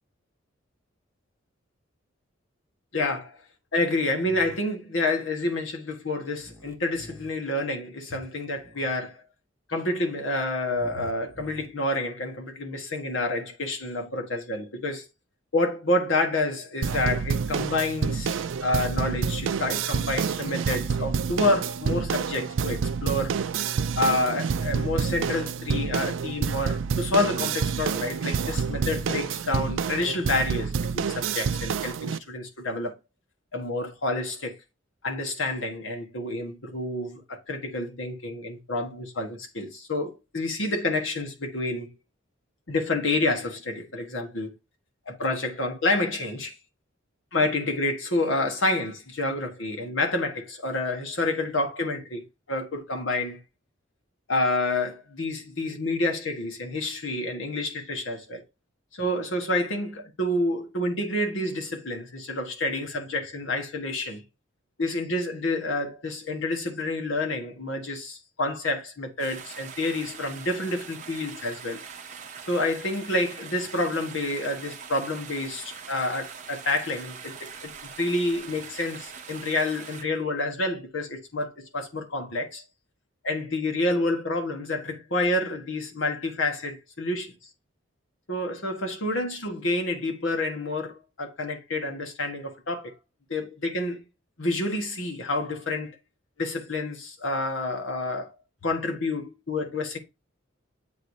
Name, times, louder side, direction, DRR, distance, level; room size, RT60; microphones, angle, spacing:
voice 1, 2.9-3.4 3.7-9.2 9.7-15.0 15.5-23.4 24.0-32.9 33.5-34.5 35.0-41.9 42.7-44.5 45.1-46.5 47.3-53.4 54.3-58.4 58.9-64.2 64.8-71.8 72.5-77.7 78.0-82.6 83.2-87.3 88.3-92.9 93.3-94.0 94.4-96.0 96.4-98.3 98.6-100.0, left 2 dB, 70° left, 1.4 m, -28 dB
sound 1, 4.2-4.6 6.4-7.3 8.6-8.9 10.7-11.7, equal, 15° right, 0.8 m, -47 dB
sound 2, 16.8-32.2, right 6 dB, 65° right, 0.4 m, -28 dB
sound 3, 69.2-80.0, right 6 dB, 40° right, 0.8 m, -42 dB
7.7 x 2.7 x 4.7 m
head